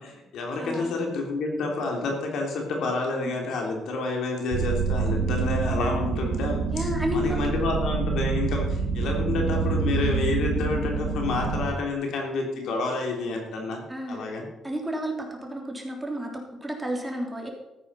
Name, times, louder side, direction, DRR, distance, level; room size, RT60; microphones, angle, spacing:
voice 1, 0.0-6.8 7.1-13.8 14.1-14.4, left 3 dB, 75° left, 1 dB, 3.4 m, -29 dB
voice 2, 0.6-0.9 3.1-3.5 6.7-7.6 13.9-14.3 14.6-17.5, equal, 10° right, 1 dB, 3.5 m, -32 dB
sound 1, 4.5-11.7, right 5 dB, 85° right, 3.1 m, -27 dB
14.0 x 9.2 x 5.7 m, 0.99 s
cardioid pair, 90°, 0 cm